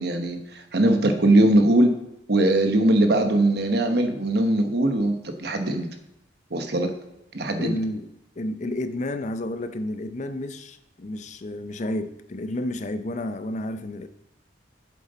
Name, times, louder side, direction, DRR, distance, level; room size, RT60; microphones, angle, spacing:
voice 1, 0.0-1.9 2.3-5.9 6.5-6.9 7.3-7.8, right 1 dB, 60° right, 1.0 m, -21 dB
voice 2, 7.6-8.1 8.4-14.1, left 1 dB, 40° left, 0.5 m, -31 dB
8.2 x 7.3 x 3.9 m
head